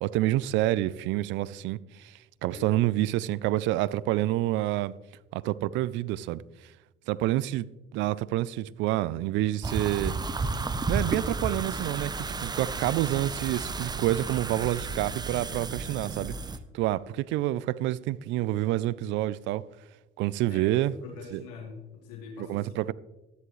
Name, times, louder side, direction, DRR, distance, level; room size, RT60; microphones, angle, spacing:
voice 1, 0.0-4.9 5.3-6.4 7.1-10.2 10.9-16.4 16.7-19.6 20.2-20.9 21.3-21.4 22.5-22.9, right 15 dB, 70° right, 0.4 m, -28 dB
voice 2, 2.5-2.9 20.5-22.8, left 5 dB, 85° left, 1.7 m, -44 dB
sound 1, 9.6-16.6, right 3 dB, 20° right, 0.7 m, -32 dB
12.5 x 10.5 x 3.2 m
supercardioid pair, 80°, 20 cm